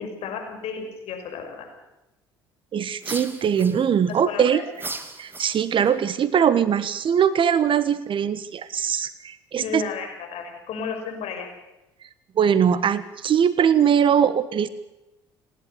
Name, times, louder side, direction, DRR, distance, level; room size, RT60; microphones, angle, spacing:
voice 1, 0.0-1.7 4.0-4.6 9.6-11.5, left 6 dB, 60° left, 4 dB, 5.9 m, -33 dB
voice 2, 2.7-4.6 5.2-9.8 12.4-14.7, right 8 dB, 45° right, 15 dB, 1.3 m, -21 dB
sound 1, 3.0-4.2 4.7-5.9, right 2 dB, 15° right, 2.5 m, -36 dB
30.0 x 11.5 x 8.3 m, 0.93 s
hypercardioid pair, 55°, 12 cm